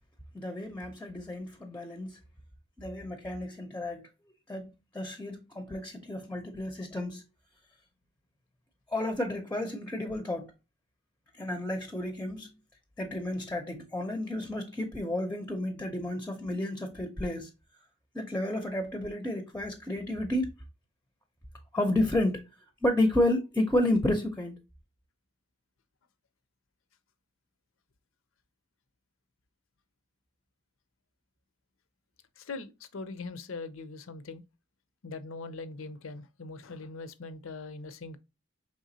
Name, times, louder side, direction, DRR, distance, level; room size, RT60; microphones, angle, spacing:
voice 1, 0.3-2.2 2.8-4.1 4.5-7.2 8.9-10.5 11.4-12.5 13.0-17.5 18.1-20.5 21.7-22.4 22.8-24.6, left 1 dB, 10° left, 0.5 m, -31 dB
voice 2, 32.4-34.4 35.0-38.2, left 3 dB, 75° left, 0.5 m, -41 dB
4.9 x 3.3 x 2.7 m
head